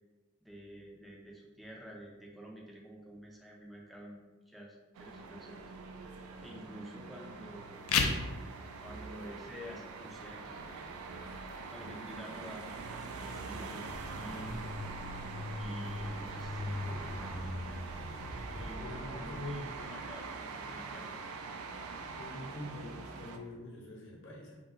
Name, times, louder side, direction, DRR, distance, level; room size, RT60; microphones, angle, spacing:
voice 1, 0.4-5.7 6.4-7.8 8.8-10.6 11.7-14.6 15.6-17.8 18.5-21.1, equal, ahead, -2 dB, 0.3 m, -49 dB
sound 1, 4.9-23.4, right 4 dB, 80° right, 0.3 m, -44 dB
sound 2, 7.7-18.7, left 5 dB, 80° left, 0.4 m, -41 dB
sound 3, 13.9-19.8, left 1 dB, 55° right, 0.9 m, -41 dB
voice 2, 18.5-19.7 22.1-24.6, left 1 dB, 55° left, -3 dB, 0.7 m, -44 dB
2.3 x 2.1 x 3.7 m, 1.2 s
head